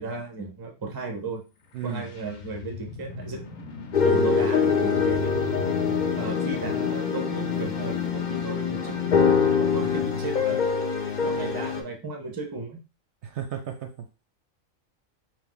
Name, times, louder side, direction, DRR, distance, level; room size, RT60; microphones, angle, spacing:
voice 1, 0.0-1.4 1.8-3.4 4.0-5.4 6.2-10.6 11.2-12.8, right 3 dB, 25° right, 3 dB, 0.6 m, -35 dB
sound 1, 1.6-10.3, left 2 dB, 80° left, 1.1 m, -40 dB
voice 2, 1.7-2.1 4.0-4.4 13.2-14.1, right 7 dB, 65° right, 5 dB, 0.8 m, -33 dB
sound 2, 3.9-11.8, left 6 dB, 55° left, 0.5 m, -24 dB
3.5 x 2.5 x 3.8 m, 0.31 s
omnidirectional pair, 1.4 m